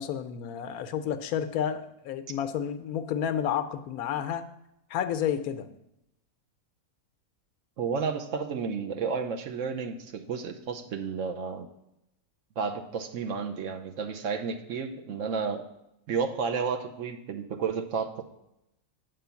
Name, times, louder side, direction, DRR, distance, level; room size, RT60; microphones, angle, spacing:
voice 1, 0.0-4.4 4.9-5.7, left 9 dB, 80° left, 10 dB, 1.1 m, -30 dB
voice 2, 7.8-11.7 12.6-15.6 16.1-18.2, right 5 dB, 65° right, 5 dB, 1.0 m, -32 dB
8.9 x 3.8 x 6.9 m, 0.84 s
omnidirectional pair, 1.5 m